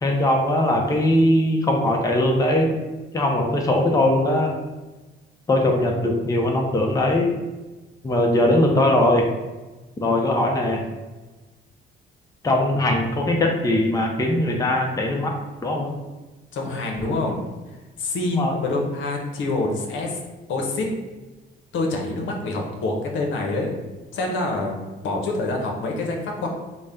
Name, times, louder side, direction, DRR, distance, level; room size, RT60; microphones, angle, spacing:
voice 1, 0.0-2.8 3.1-4.6 5.5-7.3 8.0-9.3 10.0-10.8 12.4-15.4 15.6-15.9 18.3-18.6, left 1 dB, 15° left, 1 dB, 0.6 m, -20 dB
voice 2, 16.5-17.4 18.0-20.2 20.5-20.9 21.7-23.8 24.1-26.5, left 2 dB, 75° left, 0 dB, 0.8 m, -26 dB
4.0 x 2.1 x 3.6 m, 1.2 s
cardioid pair, 90°, 20 cm